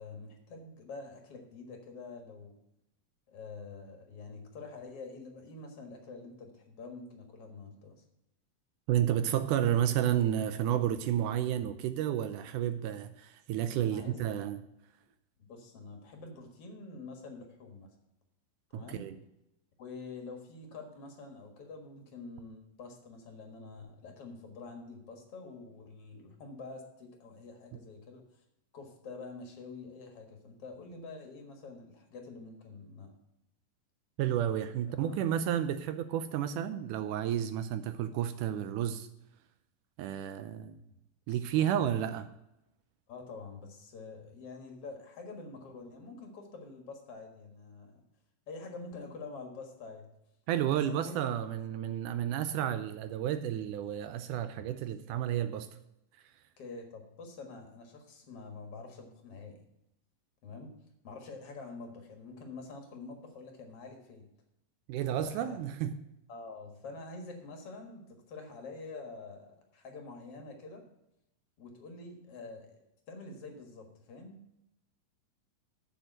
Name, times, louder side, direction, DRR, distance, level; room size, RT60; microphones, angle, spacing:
voice 1, 0.0-2.6 3.3-7.9 13.8-14.2 15.4-17.9 18.7-19.1 19.8-28.2 28.7-33.1 35.0-35.2 41.3-41.9 43.1-47.9 48.5-50.1 50.7-51.2 56.6-59.6 60.4-60.7 61.0-64.3 65.1-65.6 66.3-70.8 71.6-72.8 73.1-74.4, left 3 dB, 50° left, 2.1 m, -46 dB
voice 2, 8.9-14.6 18.7-19.2 34.2-39.1 40.0-40.8 41.3-42.3 50.5-55.7 64.9-66.0, right 10 dB, 80° right, 1.9 m, -31 dB
7.4 x 6.8 x 7.7 m
omnidirectional pair, 4.0 m